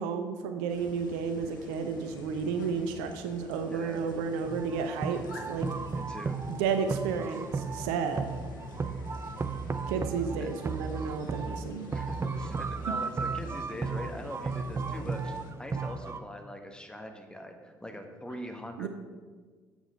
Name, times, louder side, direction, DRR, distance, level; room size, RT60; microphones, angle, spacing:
voice 1, 0.0-5.7 6.6-8.3 9.9-11.9 18.8-18.9, right 6 dB, 70° right, 7 dB, 0.7 m, -32 dB
sound 1, 0.7-15.5, left 2 dB, 85° left, 0.9 m, -49 dB
voice 2, 3.7-4.0 5.9-6.4 9.7-10.0 10.4-10.5 11.9-18.9, equal, 10° left, 4 dB, 1.5 m, -42 dB
sound 2, 4.4-16.2, right 4 dB, 25° right, 0.5 m, -35 dB
7.8 x 7.0 x 5.6 m, 1.4 s
figure-of-eight pair, 50°, 10 cm